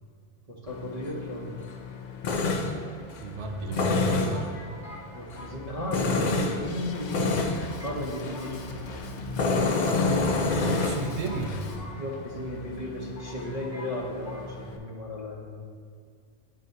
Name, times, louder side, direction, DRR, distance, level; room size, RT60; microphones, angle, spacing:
voice 1, 0.5-1.6 5.1-8.5 11.9-15.5, left 1 dB, 35° right, -5 dB, 1.0 m, -35 dB
Tools, 0.7-14.8, left 3 dB, 55° left, 0.5 m, -30 dB
sound 1, 2.8-3.6 4.3-6.6 6.9-7.0 7.2-8.0 8.3-9.3 9.8-9.9 10.2-12.5 12.8-12.9 13.1-14.0 14.2-14.5, left 2 dB, 15° left, 0.7 m, -47 dB
voice 2, 3.2-4.5 10.6-11.7, right 3 dB, 80° right, 4 dB, 0.9 m, -33 dB
Drum kit, 6.6-11.8, left 3 dB, 80° left, 0.9 m, -39 dB
10.5 x 3.9 x 2.7 m, 2.1 s
omnidirectional pair, 1.2 m